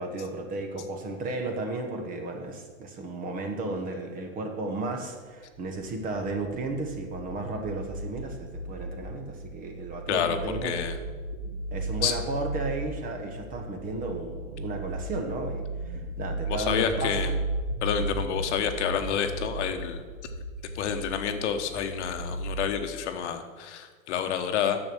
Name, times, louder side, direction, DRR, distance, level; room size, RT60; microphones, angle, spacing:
voice 1, 0.0-10.7 11.7-17.3, right 2 dB, 20° right, 4 dB, 1.0 m, -34 dB
sound 1, 5.6-22.7, right 1 dB, 85° right, 3.1 m, -35 dB
voice 2, 10.6-10.9 12.0-12.1 16.5-17.3 17.8-20.0 20.7-24.8, left 8 dB, 55° left, 7 dB, 1.2 m, -29 dB
9.9 x 7.0 x 6.2 m, 1.5 s
supercardioid pair, 150°, 40 cm